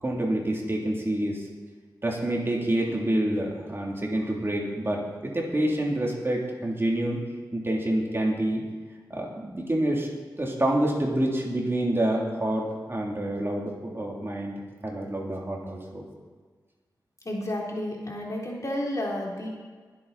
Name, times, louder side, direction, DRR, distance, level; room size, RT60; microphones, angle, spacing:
voice 1, 0.0-1.4 2.0-7.2 7.5-8.6 9.1-10.1 10.4-16.0, right 1 dB, 30° right, -2 dB, 3.3 m, -27 dB
voice 2, 17.2-19.5, left 1 dB, 45° left, -2 dB, 3.6 m, -31 dB
21.5 x 8.6 x 4.3 m, 1.5 s
cardioid pair, 45°, 8 cm